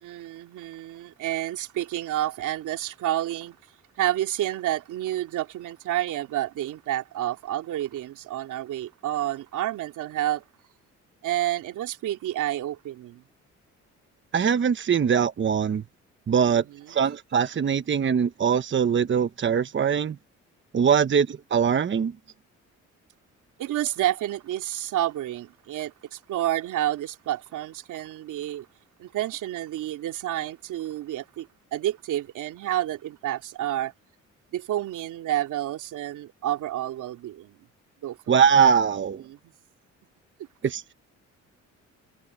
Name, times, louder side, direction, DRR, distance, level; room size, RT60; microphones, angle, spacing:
voice 1, 0.0-3.6 4.0-10.4 11.2-13.2 16.4-17.0 20.8-21.0 23.6-28.7 29.0-33.9 34.5-37.7 38.0-38.4 39.2-39.5, right 13 dB, 85° right, 3.1 m, -30 dB
voice 2, 14.3-15.8 16.3-20.2 20.7-22.1 38.3-39.2 40.6-40.9, right 7 dB, 40° right, 1.0 m, -22 dB
cardioid pair, 90°, 30 cm